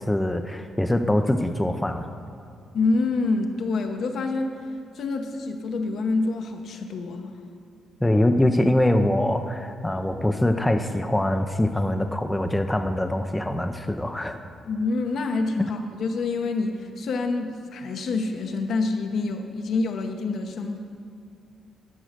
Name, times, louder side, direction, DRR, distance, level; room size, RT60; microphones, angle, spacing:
voice 1, 0.0-2.1 8.0-14.4, left 1 dB, 10° left, 6 dB, 0.5 m, -23 dB
voice 2, 2.7-4.6 4.9-7.3 14.7-20.8, left 3 dB, 65° left, 4 dB, 0.9 m, -27 dB
12.0 x 4.9 x 6.5 m, 2.5 s
cardioid pair, 90°, 0 cm